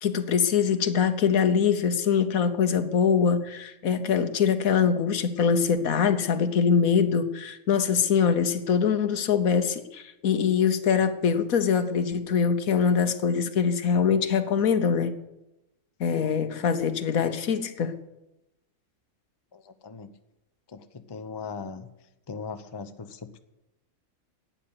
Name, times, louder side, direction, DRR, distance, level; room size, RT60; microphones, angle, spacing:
voice 1, 0.0-15.1 16.0-17.9, left 6 dB, 85° left, 10 dB, 1.5 m, -23 dB
voice 2, 19.5-20.1 20.7-21.9 22.3-23.4, left 5 dB, 25° left, 9 dB, 0.6 m, -39 dB
12.0 x 9.2 x 9.5 m, 0.94 s
omnidirectional pair, 1.4 m